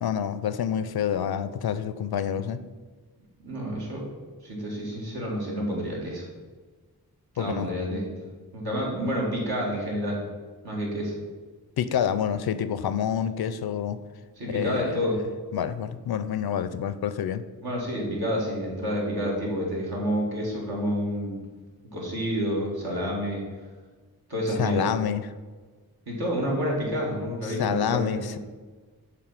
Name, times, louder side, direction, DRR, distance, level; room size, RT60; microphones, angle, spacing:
voice 1, 0.0-2.6 7.4-7.7 11.8-14.0 14.5-15.0 15.5-17.4 24.6-25.3 27.5-28.4, left 8 dB, 70° left, 13 dB, 0.5 m, -27 dB
voice 2, 3.4-4.0 4.4-6.3 7.3-8.2 8.5-10.2 10.6-11.2 14.4-15.2 17.6-21.4 21.9-23.4 24.3-24.9 26.1-28.4, equal, 70° right, -3 dB, 2.2 m, -29 dB
6.8 x 3.5 x 5.8 m, 1.4 s
wide cardioid pair, 65°, 38 cm